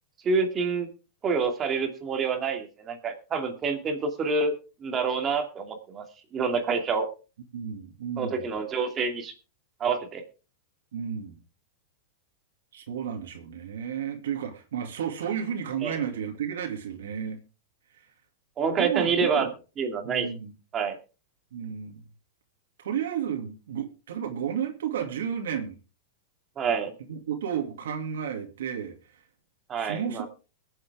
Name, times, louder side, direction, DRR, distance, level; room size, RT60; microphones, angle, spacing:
voice 1, 0.2-0.9 1.2-4.5 4.8-6.0 6.3-7.1 8.2-9.3 9.8-10.2 15.8-16.0 18.6-19.5 19.8-20.3 20.7-21.0 26.6-26.9 29.7-30.3, right 5 dB, 25° right, 2.4 m, -27 dB
voice 2, 7.5-8.4 10.9-11.4 12.7-17.4 18.7-19.5 20.0-20.5 21.5-22.0 22.8-25.8 27.1-28.9 29.8-30.3, right 8 dB, 85° right, 2.5 m, -32 dB
22.0 x 7.6 x 3.5 m
supercardioid pair, 140°, 0 cm